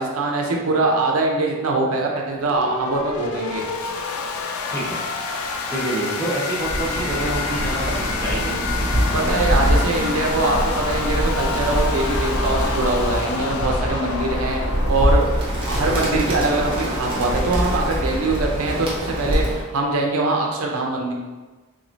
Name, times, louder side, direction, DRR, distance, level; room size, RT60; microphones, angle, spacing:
voice 1, 0.0-3.7 9.1-21.1, right 2 dB, 75° right, 0 dB, 0.5 m, -23 dB
sound 1, 2.3-14.9, left 4 dB, 75° left, 0.4 m, -29 dB
voice 2, 4.7-5.0 5.7-8.6, right 1 dB, 10° left, -8 dB, 1.0 m, -27 dB
Bird, 6.6-19.7, equal, 25° right, 0.7 m, -24 dB
3.6 x 3.0 x 2.5 m, 1.3 s
head